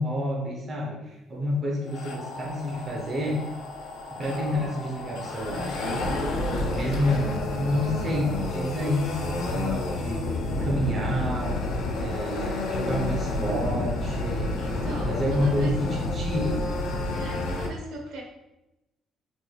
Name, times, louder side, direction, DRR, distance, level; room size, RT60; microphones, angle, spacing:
voice 1, 0.0-3.5 4.2-6.4 6.7-10.3 10.6-11.6 11.9-14.6 15.0-16.6, left 1 dB, 25° right, -2 dB, 0.7 m, -29 dB
sound 1, 1.9-17.7, left 2 dB, 85° left, 0.8 m, -30 dB
voice 2, 14.6-15.8 17.1-18.2, equal, 70° right, 0 dB, 1.1 m, -37 dB
6.1 x 3.6 x 2.3 m, 0.95 s
cardioid pair, 170°, 0 cm